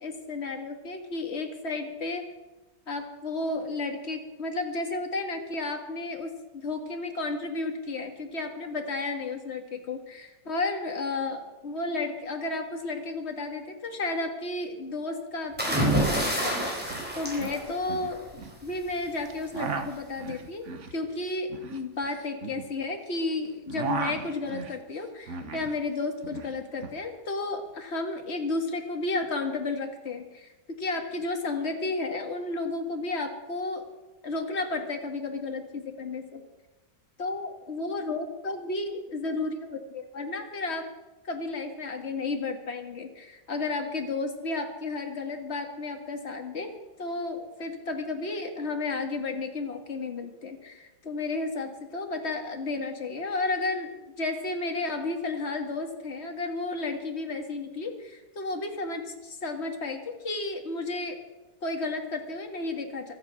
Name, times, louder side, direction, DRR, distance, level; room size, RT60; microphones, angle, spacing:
voice 1, 0.0-2.3 2.9-18.3 18.6-33.8 34.2-36.4 37.2-40.9 41.2-46.7 47.0-61.2 61.6-63.1, left 3 dB, 35° left, 4 dB, 1.9 m, -32 dB
sound 1, 15.6-18.3 19.6-19.9, right 1 dB, 5° right, 4.3 m, -28 dB
sound 2, 16.4-16.5 16.7-17.1 17.4-18.6 19.2-23.2 23.5-25.8 26.0-27.0, right 5 dB, 45° right, 1.3 m, -36 dB
24.0 x 8.3 x 6.4 m, 1.1 s
omnidirectional pair, 2.0 m